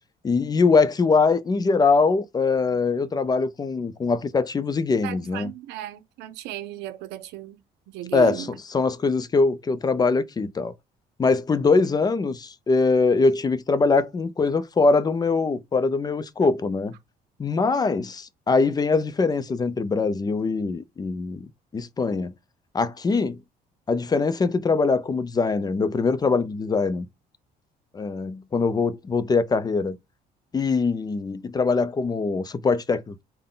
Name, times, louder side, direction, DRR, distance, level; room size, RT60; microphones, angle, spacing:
voice 1, 0.2-5.5 8.1-10.7 11.2-16.9 17.4-21.5 21.7-22.3 22.7-23.4 23.9-27.1 27.9-30.0 30.5-33.2, left 4 dB, 25° left, 0.4 m, -22 dB
voice 2, 5.0-7.6 7.9-8.5, right 14 dB, 90° right, 0.6 m, -35 dB
3.7 x 2.1 x 3.7 m
cardioid pair, 110°, 17 cm